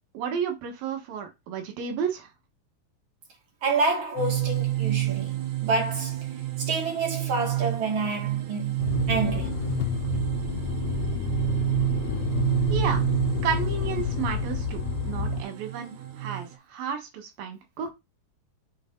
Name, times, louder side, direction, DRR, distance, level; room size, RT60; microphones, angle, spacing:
voice 1, 0.1-2.3 12.7-13.0 13.4-17.9, right 7 dB, 85° right, 3.4 m, -32 dB
voice 2, 3.6-6.2 6.6-9.5, right 3 dB, 40° right, 2.7 m, -28 dB
sound 1, 4.2-16.5, right 17 dB, 70° right, 2.2 m, -29 dB
Motor vehicle (road), 8.8-15.4, left 11 dB, 90° left, 1.6 m, -30 dB
7.2 x 4.4 x 3.9 m
omnidirectional pair, 4.0 m